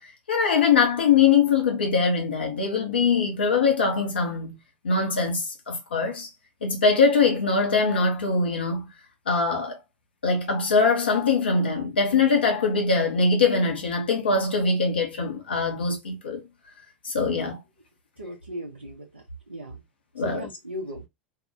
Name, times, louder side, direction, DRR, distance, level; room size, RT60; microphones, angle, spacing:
voice 1, 0.0-4.6 4.8-6.3 6.6-8.9 9.3-9.8 10.2-16.4 17.0-17.6 20.2-20.5, left 4 dB, 75° left, 0.7 m, -22 dB
voice 2, 18.2-19.8 20.2-21.1, equal, 85° right, 0.8 m, -37 dB
2.7 x 2.2 x 2.5 m
figure-of-eight pair, 85°, 6 cm